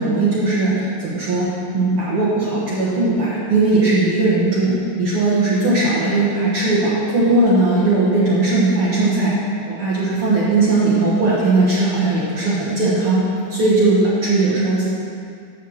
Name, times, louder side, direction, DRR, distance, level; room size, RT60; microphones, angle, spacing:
voice 1, 0.0-9.4 9.6-13.2 13.5-14.9, right 2 dB, 70° right, -8 dB, 1.3 m, -18 dB
8.3 x 5.9 x 7.3 m, 2.4 s
omnidirectional pair, 4.7 m